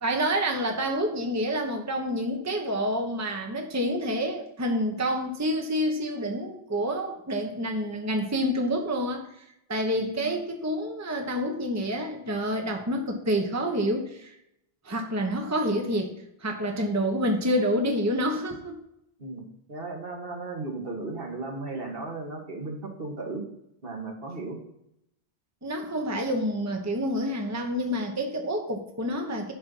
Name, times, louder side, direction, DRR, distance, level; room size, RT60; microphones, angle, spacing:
voice 1, 0.0-9.3 9.7-14.4 14.8-16.1 16.4-18.8 25.6-29.5, equal, 15° right, 3 dB, 1.0 m, -28 dB
voice 2, 9.9-10.4 19.2-23.4 23.8-24.6, right 3 dB, 55° right, 1 dB, 1.8 m, -36 dB
11.0 x 4.4 x 5.4 m, 0.79 s
omnidirectional pair, 1.1 m